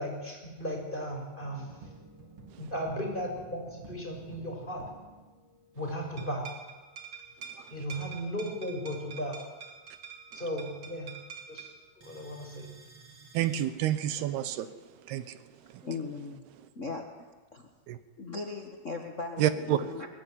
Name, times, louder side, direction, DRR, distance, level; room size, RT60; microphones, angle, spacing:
voice 1, 0.0-1.7 2.6-4.8 5.7-6.5 7.7-9.4 10.3-11.2 11.5-11.7 12.0-12.7 14.2-14.3, equal, 10° left, 1 dB, 5.7 m, -36 dB
sound 1, 1.4-5.9 6.2-13.6, right 5 dB, 35° right, 3.4 m, -49 dB
voice 2, 13.3-14.7 15.1-15.4 17.9-18.0 19.4-19.8, right 12 dB, 80° right, 13 dB, 3.1 m, -28 dB
voice 3, 15.8-16.4 16.7-17.7 18.2-20.1, left 4 dB, 55° left, 3 dB, 0.8 m, -38 dB
23.5 x 20.5 x 9.8 m, 1.2 s
omnidirectional pair, 4.5 m